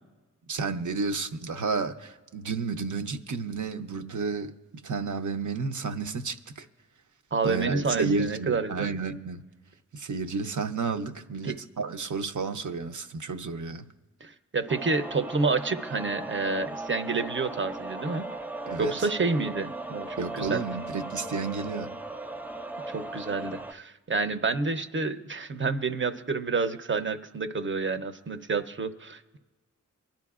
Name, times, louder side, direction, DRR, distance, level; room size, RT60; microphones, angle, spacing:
voice 1, 0.5-4.5 4.8-6.7 7.4-9.4 9.9-13.9 18.7-19.1 20.2-21.9, right 4 dB, 65° right, 0.7 m, -31 dB
voice 2, 7.3-8.9 11.4-11.6 14.2-18.3 18.8-20.6 22.9-29.4, right 4 dB, 35° right, 0.7 m, -29 dB
sound 1, 14.7-23.7, right 2 dB, 5° right, 0.4 m, -38 dB
24.5 x 10.5 x 2.4 m
wide cardioid pair, 85°, 32 cm